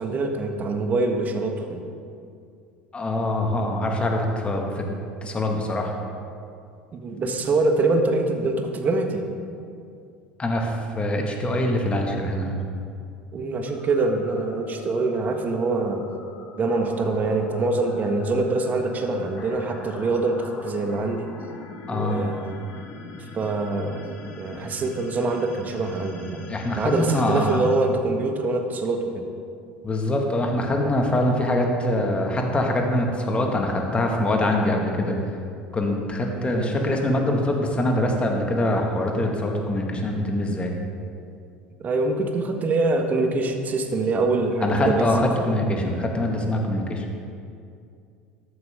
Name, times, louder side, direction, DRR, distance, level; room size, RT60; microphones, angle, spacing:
voice 1, 0.0-1.8 6.9-9.2 13.3-16.0 16.6-21.3 21.9-22.6 23.3-24.1 24.4-26.4 26.7-29.3 36.3-36.7 41.8-45.5, right 3 dB, 30° right, 4 dB, 1.5 m, -24 dB
voice 2, 2.9-4.9 5.2-5.9 10.4-12.5 21.9-22.2 26.5-27.6 29.8-35.2 35.7-40.7 44.6-47.0, left 1 dB, 20° left, 2 dB, 2.0 m, -24 dB
sound 1, 13.6-28.8, left 2 dB, 35° left, 1.9 m, -42 dB
14.0 x 11.0 x 3.8 m, 2.4 s
figure-of-eight pair, 70°, 5 cm